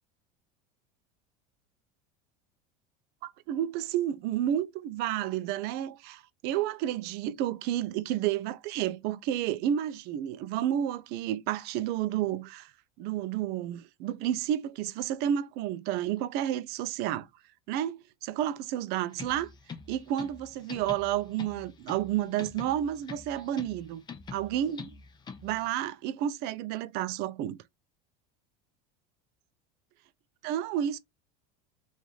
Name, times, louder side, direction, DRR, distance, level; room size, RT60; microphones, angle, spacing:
voice 1, 3.2-12.7 13.0-17.3 17.7-18.0 18.2-19.5 19.9-24.0 24.3-24.9 25.4-27.6 30.4-31.0, right 11 dB, 55° right, 0.5 m, -31 dB
sound 1, 19.1-25.7, left 5 dB, 20° left, 0.7 m, -45 dB
3.0 x 2.6 x 3.8 m
supercardioid pair, 120°, 20 cm